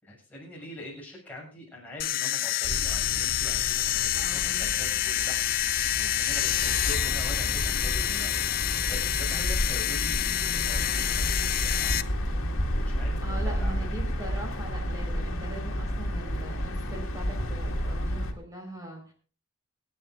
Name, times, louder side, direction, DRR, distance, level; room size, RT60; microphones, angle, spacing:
voice 1, 0.0-12.3 12.8-14.0, left 1 dB, 5° left, -4 dB, 6.7 m, -44 dB
sound 1, 2.0-12.0, left 13 dB, 40° left, 0.5 m, -28 dB
sound 2, 2.6-18.3, equal, 70° left, 2.2 m, -31 dB
voice 2, 4.2-4.8 13.2-19.1, right 1 dB, 15° right, 2 dB, 4.7 m, -41 dB
27.0 x 9.4 x 2.6 m, 0.36 s
head